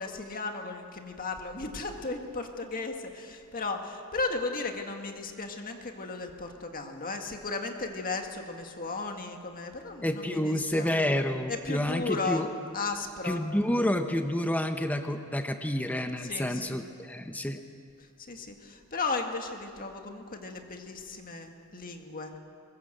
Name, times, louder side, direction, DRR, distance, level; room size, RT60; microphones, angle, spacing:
voice 1, 0.0-11.0 11.5-12.4 12.7-13.4 16.2-16.8 18.3-22.4, left 3 dB, 40° left, 4 dB, 1.9 m, -35 dB
voice 2, 10.0-12.5 13.2-17.6, left 1 dB, 5° left, 6 dB, 0.9 m, -29 dB
22.5 x 21.5 x 7.8 m, 2.3 s
head